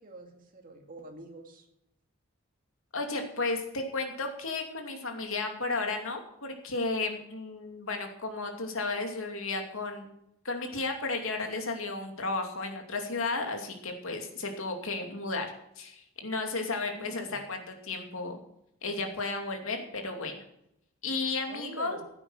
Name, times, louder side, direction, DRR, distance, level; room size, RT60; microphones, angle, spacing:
voice 1, 0.0-1.6 16.9-17.4 21.5-22.0, right 2 dB, 40° right, 3 dB, 2.3 m, -46 dB
voice 2, 2.9-10.1 10.4-15.5 15.8-18.4 18.8-20.4 21.0-22.0, left 3 dB, 70° left, 4 dB, 2.6 m, -33 dB
16.0 x 8.8 x 6.4 m, 0.80 s
head